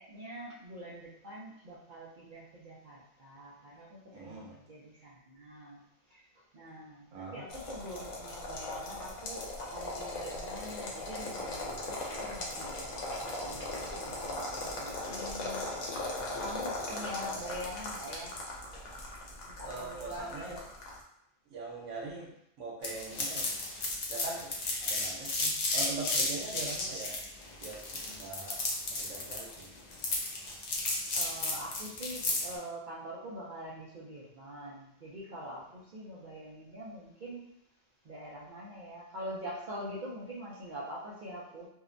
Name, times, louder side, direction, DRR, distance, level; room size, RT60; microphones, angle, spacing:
voice 1, 0.0-5.8 6.1-6.2 6.5-15.7 16.4-18.3 19.4-20.6 31.1-37.5 38.0-41.7, equal, 55° right, -7 dB, 0.5 m, -44 dB
voice 2, 4.1-4.6 7.1-7.4 16.9-17.6 19.6-20.6 21.5-23.6 24.1-24.5 24.8-27.1 27.6-28.6 28.9-29.7, right 3 dB, 75° right, -3 dB, 1.1 m, -42 dB
sound 1, 7.5-21.0, left 2 dB, 80° left, 1.0 m, -39 dB
sound 2, 22.8-32.5, left 2 dB, 60° left, 0.4 m, -33 dB
2.7 x 2.1 x 2.5 m, 0.76 s
omnidirectional pair, 1.3 m